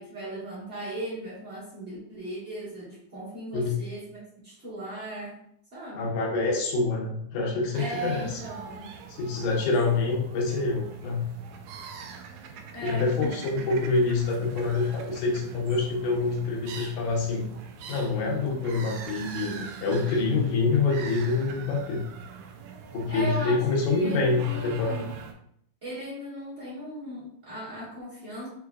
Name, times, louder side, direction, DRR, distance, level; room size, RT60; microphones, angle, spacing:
voice 1, 0.0-4.2 4.4-5.4 5.7-6.0 7.8-8.9 12.7-13.3 13.6-13.7 23.1-23.6 23.9-25.1 25.8-28.5, right 1 dB, 35° right, -9 dB, 1.1 m, -37 dB
voice 2, 6.0-8.3 9.2-11.2 12.8-17.5 17.9-22.0 22.9-25.1, left 3 dB, 80° left, 0 dB, 2.3 m, -26 dB
sound 1, 7.7-25.3, right 6 dB, 80° right, 1.9 m, -43 dB
5.6 x 3.1 x 2.3 m, 0.71 s
omnidirectional pair, 3.4 m